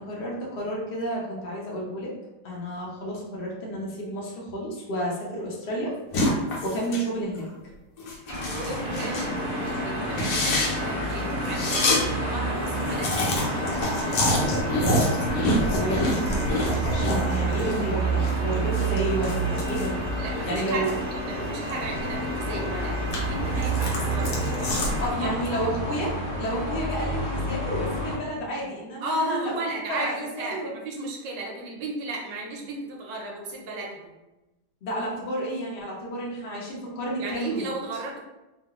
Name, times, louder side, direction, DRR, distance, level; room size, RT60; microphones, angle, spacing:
voice 1, 0.0-2.1 2.4-5.9 6.3-7.5 15.7-20.0 20.5-21.0 25.0-29.6 29.9-30.7 34.8-37.7, equal, 85° left, -3 dB, 0.5 m, -31 dB
sound 1, 6.1-7.1 7.4-7.5 8.0-9.3 9.7-9.8 10.1-12.0 12.3-12.4 12.6-17.8 18.1-21.0 21.4-22.4 22.8-25.1, left 1 dB, 65° left, 1.1 m, -27 dB
sound 2, 8.3-28.2, right 2 dB, 35° right, 0.6 m, -30 dB
voice 2, 8.4-14.8 20.2-20.9 21.2-25.6 29.0-34.1 37.2-38.2, right 2 dB, 85° right, 0 dB, 1.4 m, -35 dB
sound 3, 8.8-25.1, equal, 60° right, 1.1 m, -34 dB
3.0 x 2.4 x 2.8 m, 1.0 s
omnidirectional pair, 1.9 m